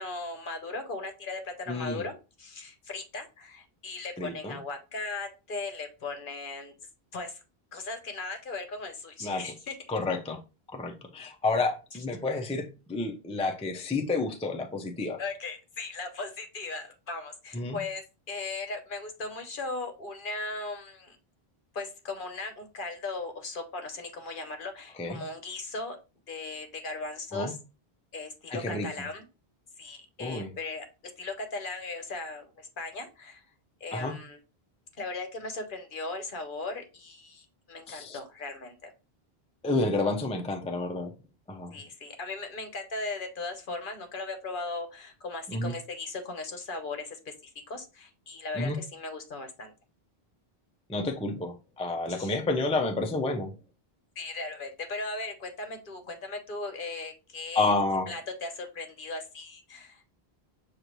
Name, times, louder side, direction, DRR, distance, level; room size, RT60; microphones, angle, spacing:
voice 1, 0.0-6.7 7.1-7.4 7.7-10.0 15.2-21.2 21.7-26.0 26.3-27.6 28.1-29.2 29.8-30.8 31.2-33.4 33.8-34.4 35.0-38.9 41.7-49.7 52.1-52.4 54.2-57.7 58.1-60.2, left 3 dB, 60° left, 6 dB, 1.0 m, -38 dB
voice 2, 1.7-2.0 4.2-4.6 9.2-9.4 9.9-10.4 10.7-15.2 17.5-17.8 25.0-25.2 27.3-27.5 28.5-28.9 30.2-30.5 33.9-34.1 37.9-38.2 39.6-41.1 41.5-41.7 45.5-45.7 48.6-48.8 50.9-53.5 57.5-58.1, left 2 dB, 10° left, 4 dB, 0.4 m, -30 dB
6.6 x 2.5 x 3.0 m, 0.31 s
omnidirectional pair, 1.0 m